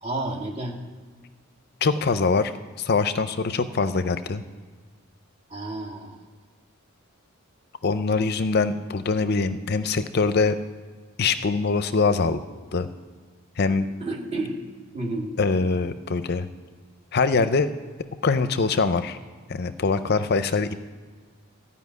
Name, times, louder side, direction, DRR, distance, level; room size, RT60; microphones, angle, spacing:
voice 1, 0.0-0.8 5.5-6.2 14.0-14.6 14.9-15.3, right 2 dB, 30° right, 0 dB, 1.9 m, -30 dB
voice 2, 1.8-4.4 7.8-10.6 11.2-12.4 12.7-12.9 13.6-13.9 15.4-16.5 17.1-17.7 18.2-19.2 19.5-20.7, left 4 dB, 45° left, 11 dB, 0.5 m, -23 dB
14.0 x 5.6 x 9.5 m, 1.5 s
head